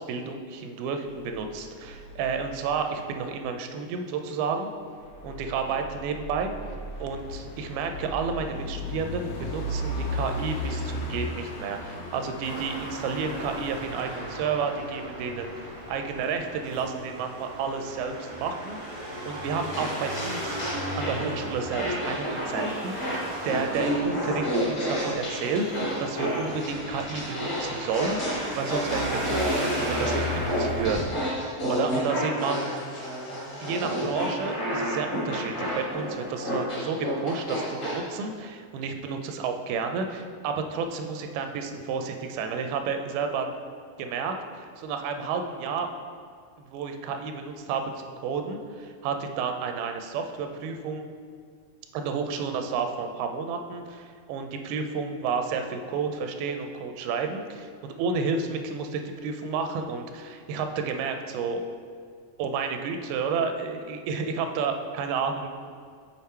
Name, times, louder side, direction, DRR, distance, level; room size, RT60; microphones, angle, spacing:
voice 1, 0.0-4.7 5.2-6.5 7.0-20.6 21.0-29.5 29.8-32.6 33.6-43.5 44.0-45.9 46.7-51.0 51.9-61.6 62.4-65.5, right 5 dB, 90° right, 6 dB, 2.4 m, -31 dB
sound 1, 1.1-3.3 4.9-16.7, equal, 80° left, 2.7 m, -37 dB
Traffic noise roadway noise, 12.4-31.1, equal, 60° right, 0.6 m, -36 dB
sound 2, 19.7-21.3 21.7-38.0, equal, 50° left, 0.9 m, -30 dB
7.4 x 3.6 x 4.4 m, 2.1 s
omnidirectional pair, 4.2 m